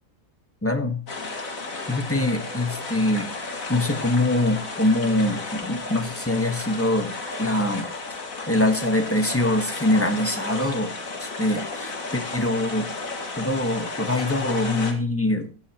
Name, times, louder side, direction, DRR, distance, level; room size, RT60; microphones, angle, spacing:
voice 1, 0.6-1.0 1.9-3.3 3.7-7.1 7.4-7.9 8.5-10.9 11.2-12.9 13.4-15.5, left 1 dB, 10° left, 6 dB, 1.3 m, -23 dB
sound 1, 1.1-14.9, left 3 dB, 60° left, 2.5 m, -33 dB
16.0 x 9.3 x 3.0 m, 0.37 s
omnidirectional pair, 1.6 m